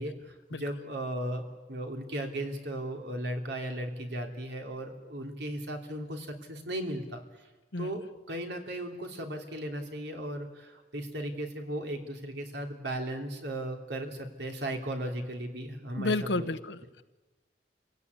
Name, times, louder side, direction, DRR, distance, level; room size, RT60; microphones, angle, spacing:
voice 1, 0.0-7.2 7.8-16.5, right 1 dB, 75° right, 4 dB, 3.1 m, -36 dB
voice 2, 16.0-17.0, left 2 dB, 90° left, 11 dB, 1.1 m, -31 dB
27.0 x 17.0 x 9.7 m, 1.2 s
head